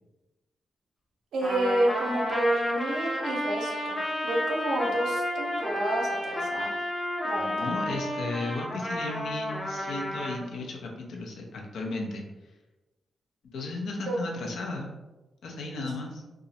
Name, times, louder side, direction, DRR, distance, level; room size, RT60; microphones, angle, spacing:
voice 1, 1.3-6.7 7.2-7.7 14.1-14.2 15.8-15.9, right 1 dB, 85° right, -2 dB, 0.5 m, -29 dB
Trumpet, 1.4-10.4, left 1 dB, 35° left, 0.6 m, -31 dB
voice 2, 7.3-12.2 13.5-14.9 15.4-16.2, left 2 dB, 80° left, 0 dB, 0.4 m, -35 dB
2.3 x 2.0 x 2.7 m, 1.1 s
cardioid pair, 60°, 0 cm